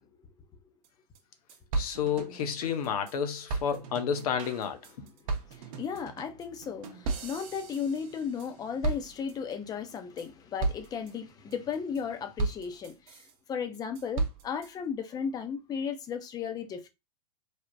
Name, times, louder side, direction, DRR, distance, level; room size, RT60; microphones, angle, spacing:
sound 1, 0.8-0.9 1.1-1.2 1.5-3.1 3.5-8.5 8.8-9.5 9.9-10.3 10.6-11.1 11.5-12.0 12.4-13.3 13.7-14.7, right 3 dB, 55° right, 0.7 m, -35 dB
voice 1, 1.8-5.1, left 7 dB, 60° left, 0.7 m, -31 dB
voice 2, 5.5-13.2 13.5-16.9, left 6 dB, 20° left, 0.5 m, -35 dB
3.3 x 2.1 x 2.5 m
hypercardioid pair, 110°, 21 cm